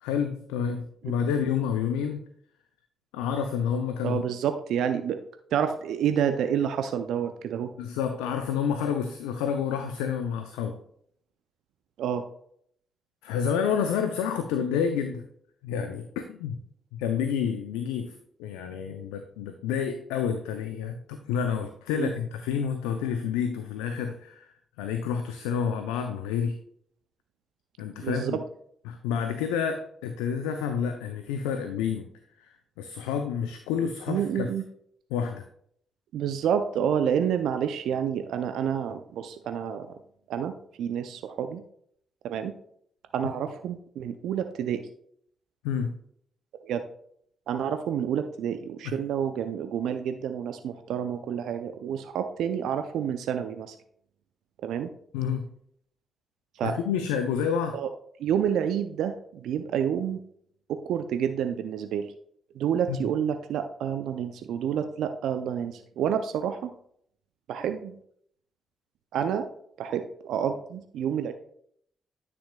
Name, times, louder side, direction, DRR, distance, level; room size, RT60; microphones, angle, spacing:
voice 1, 0.0-2.2 3.1-4.2 7.8-10.8 13.2-15.3 15.6-16.6 16.9-18.1 18.4-24.5 24.8-26.6 27.8-28.4 28.9-32.1 32.4-34.5 35.1-35.4 45.6-45.9 48.8-49.0 55.1-55.5 56.6-57.8 62.9-63.0, left 7 dB, 85° left, 7 dB, 0.4 m, -29 dB
voice 2, 4.0-5.2 5.5-7.7 12.0-12.3 22.0-22.1 28.0-28.4 34.1-34.6 36.1-39.9 40.3-41.6 42.2-42.5 43.1-44.8 46.6-46.8 47.5-53.7 54.6-54.9 56.6-56.8 57.7-57.9 58.2-60.2 60.7-62.1 62.6-66.7 67.5-68.0 69.1-69.5 69.8-71.3, right 8 dB, 75° right, 8 dB, 0.4 m, -29 dB
9.9 x 6.1 x 2.2 m, 0.67 s
hypercardioid pair, 45°, 0 cm